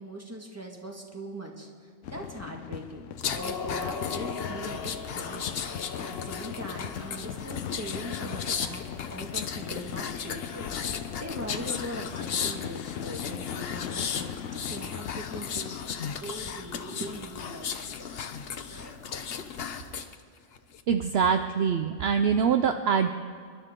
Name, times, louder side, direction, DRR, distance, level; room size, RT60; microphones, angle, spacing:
voice 1, 0.0-1.7 2.1-5.5 6.0-8.8 9.1-15.8 16.2-18.0 18.7-19.0, right 1 dB, 10° right, 1 dB, 1.7 m, -41 dB
sound 1, 2.0-16.0, left 9 dB, 90° left, 1.0 m, -39 dB
sound 2, 3.2-20.1 20.5-20.8, left 6 dB, 55° left, 0.9 m, -35 dB
voice 2, 20.9-23.1, right 7 dB, 60° right, 7 dB, 0.8 m, -24 dB
28.5 x 12.0 x 3.7 m, 2.2 s
omnidirectional pair, 1.3 m